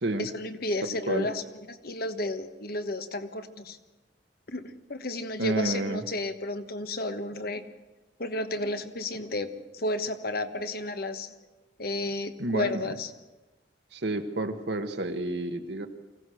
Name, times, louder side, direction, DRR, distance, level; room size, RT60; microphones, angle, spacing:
voice 1, 0.2-3.8 4.5-7.7 8.2-11.3 11.8-13.1, left 2 dB, 60° left, 9 dB, 1.3 m, -32 dB
voice 2, 0.8-1.3 5.4-6.0 12.4-12.9 13.9-15.9, right 2 dB, 70° right, 6 dB, 1.4 m, -30 dB
24.5 x 16.5 x 6.4 m, 1.1 s
head